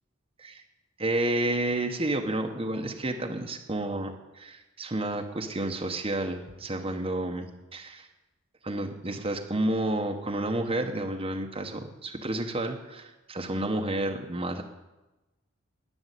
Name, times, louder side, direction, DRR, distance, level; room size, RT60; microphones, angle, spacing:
voice 1, 1.0-8.1 8.6-14.6, right 1 dB, 25° right, 3 dB, 1.0 m, -30 dB
11.5 x 9.6 x 8.2 m, 1.1 s
head